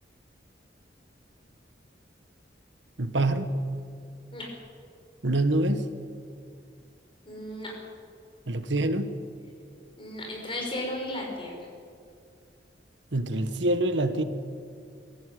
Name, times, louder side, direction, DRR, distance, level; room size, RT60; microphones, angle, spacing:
voice 1, 3.0-3.6 5.2-5.9 8.5-9.1 13.1-14.2, right 1 dB, 85° right, 9 dB, 1.4 m, -25 dB
voice 2, 7.2-7.7 10.0-11.5, left 1 dB, 30° left, -1 dB, 6.1 m, -34 dB
22.0 x 15.0 x 9.4 m, 2.3 s
head